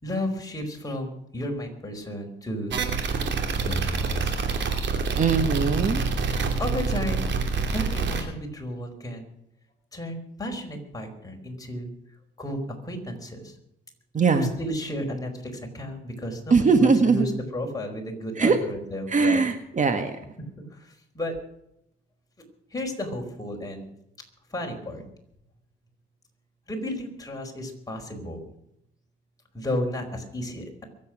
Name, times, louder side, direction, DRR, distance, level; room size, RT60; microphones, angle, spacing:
voice 1, 0.0-2.7 3.6-4.3 6.6-7.2 7.7-9.3 9.9-11.9 12.4-13.5 14.3-19.4 20.7-21.3 22.7-23.9 24.5-25.0 26.7-28.4 29.5-30.8, left 1 dB, 20° left, 2 dB, 4.6 m, -33 dB
sound 1, 2.7-8.2, right 4 dB, 65° right, 2.9 m, -26 dB
voice 2, 5.2-6.0 14.1-14.5 16.5-17.2 18.4-18.6 19.1-20.2, right 4 dB, 40° right, 8 dB, 1.6 m, -20 dB
23.5 x 8.5 x 6.0 m, 0.77 s
cardioid pair, 90°, 20 cm